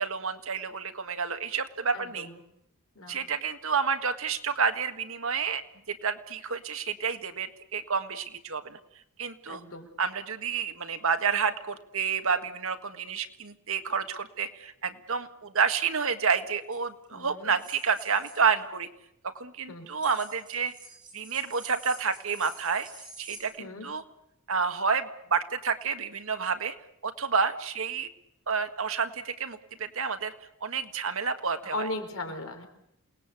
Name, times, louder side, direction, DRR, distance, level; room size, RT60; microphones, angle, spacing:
voice 1, 0.0-2.3 3.1-5.6 5.9-8.8 9.2-9.6 10.0-18.9 19.3-20.7 21.1-22.9 23.2-24.0 24.5-26.7 27.0-28.1 28.5-30.3 30.6-31.9, right 5 dB, 65° right, 8 dB, 1.7 m, -29 dB
voice 2, 1.9-2.4 2.9-3.2 9.5-9.9 17.1-17.6 19.7-19.9 23.6-23.9 31.6-32.7, left 2 dB, 65° left, 5 dB, 4.6 m, -37 dB
sound 1, 16.6-16.8 17.6-18.5 19.9-23.4, right 3 dB, 20° right, 7.7 m, -48 dB
28.5 x 19.5 x 8.4 m, 0.79 s
head